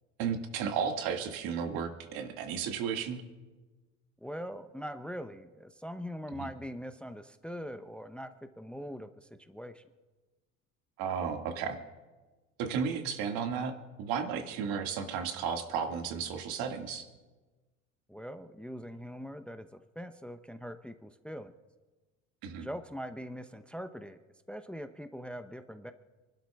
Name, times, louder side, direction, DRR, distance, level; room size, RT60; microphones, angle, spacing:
voice 1, 0.2-3.2 6.3-6.5 11.0-11.8 12.6-17.1 22.4-22.7, right 6 dB, 65° right, 4 dB, 2.0 m, -34 dB
voice 2, 4.2-9.8 18.1-21.5 22.6-24.2 24.5-25.9, equal, 5° left, 9 dB, 0.8 m, -42 dB
29.0 x 12.0 x 2.4 m, 1.2 s
hypercardioid pair, 60°, 38 cm